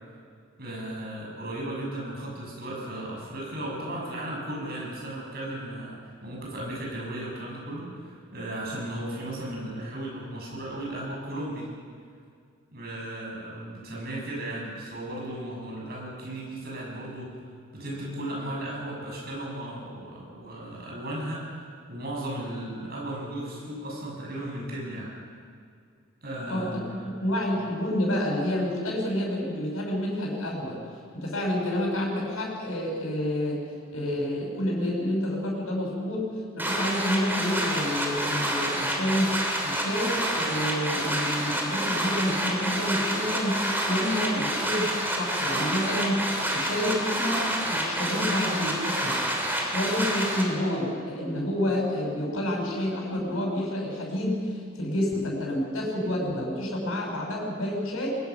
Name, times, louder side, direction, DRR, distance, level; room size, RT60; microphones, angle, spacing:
voice 1, 0.6-11.7 12.7-17.3 17.7-25.1 26.2-27.1, right 1 dB, 50° right, -3 dB, 7.2 m, -35 dB
voice 2, 26.5-30.8 31.1-33.6 33.9-36.3 36.5-39.4 39.6-49.2 49.6-58.1, left 1 dB, 85° left, -2 dB, 6.1 m, -29 dB
sound 1, 36.6-50.4, right 1 dB, 10° right, 2.8 m, -28 dB
22.5 x 21.5 x 6.0 m, 2.2 s
head